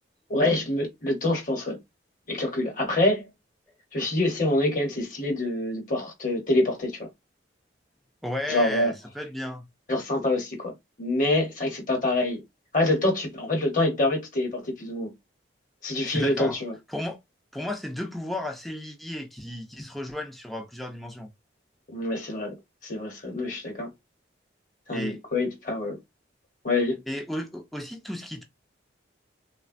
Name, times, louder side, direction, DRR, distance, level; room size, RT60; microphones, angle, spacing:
voice 1, 0.3-1.8 2.3-3.3 3.9-7.1 8.5-8.9 9.9-10.7 11.0-12.4 12.7-15.1 15.8-16.7 21.9-22.5 22.8-23.9 24.9-26.0 26.6-27.0, left 2 dB, 45° left, 1.0 m, -26 dB
voice 2, 8.2-9.7 16.1-16.6 16.9-17.2 17.5-21.3 24.9-25.2 27.1-28.4, left 1 dB, ahead, 0.4 m, -34 dB
3.1 x 2.2 x 2.5 m
head